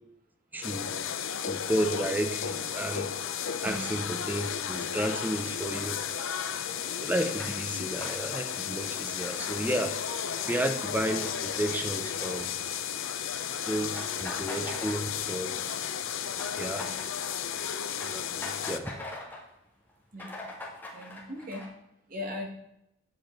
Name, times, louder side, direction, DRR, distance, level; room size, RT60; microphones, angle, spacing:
voice 1, 0.5-0.9 1.4-3.1 3.6-6.0 7.0-9.9 10.4-12.5 13.7-15.8 16.6-16.9 18.0-19.0, right 1 dB, 10° right, 6 dB, 0.6 m, -32 dB
sound 1, 0.6-18.8, left 8 dB, 70° left, 0.6 m, -34 dB
voice 2, 3.6-4.0 16.8-17.1 20.1-20.4 20.9-21.6 22.1-22.5, left 1 dB, 40° right, 2 dB, 1.6 m, -38 dB
sound 2, 4.9-13.0 13.2-13.4 13.7-15.5 15.8-19.5 19.9-20.0 20.2-21.7, left 2 dB, 10° left, 2.0 m, -44 dB
8.7 x 7.9 x 4.4 m, 0.81 s
head